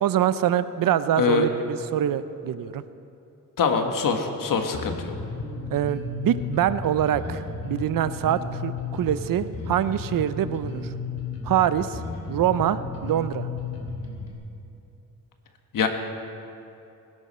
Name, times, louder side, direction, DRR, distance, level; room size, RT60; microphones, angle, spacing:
voice 1, 0.0-2.8 5.7-10.8 11.4-12.0 12.3-13.5, right 10 dB, 75° right, 14 dB, 0.6 m, -24 dB
voice 2, 3.6-5.1 15.7-15.9, left 6 dB, 75° left, 5 dB, 1.5 m, -23 dB
Bass guitar, 4.7-14.3, left 3 dB, 50° left, 3.0 m, -34 dB
20.5 x 11.5 x 4.3 m, 2.8 s
cardioid pair, 95°, 34 cm